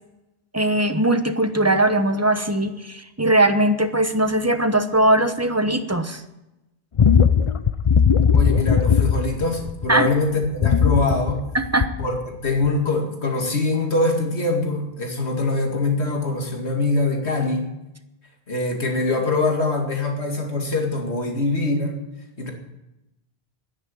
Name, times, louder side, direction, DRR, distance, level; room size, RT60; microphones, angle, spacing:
voice 1, 0.5-6.2 9.9-10.1 11.5-11.9, right 1 dB, 15° right, 8 dB, 0.9 m, -20 dB
sound 1, 7.0-10.0 10.4-12.2 12.6-12.8, left 7 dB, 40° left, 0.5 m, -18 dB
voice 2, 8.3-11.4 12.0-17.7 18.5-21.9 22.4-22.5, left 2 dB, 80° left, 2 dB, 2.6 m, -23 dB
12.0 x 10.0 x 9.4 m, 0.95 s
omnidirectional pair, 1.1 m